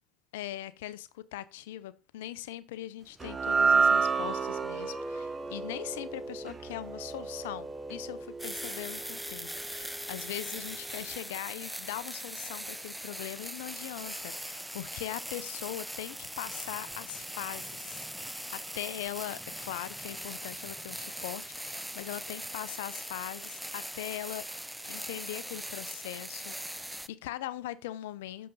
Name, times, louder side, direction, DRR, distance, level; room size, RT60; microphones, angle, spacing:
voice 1, 0.3-24.5 24.8-28.5, left 14 dB, 85° left, 0.4 m, -41 dB
sound 1, 3.2-9.6, right 5 dB, 25° right, 0.7 m, -30 dB
sound 2, 8.4-27.1, equal, 5° right, 0.4 m, -40 dB
6.4 x 5.5 x 3.9 m
hypercardioid pair, 75°, 0 cm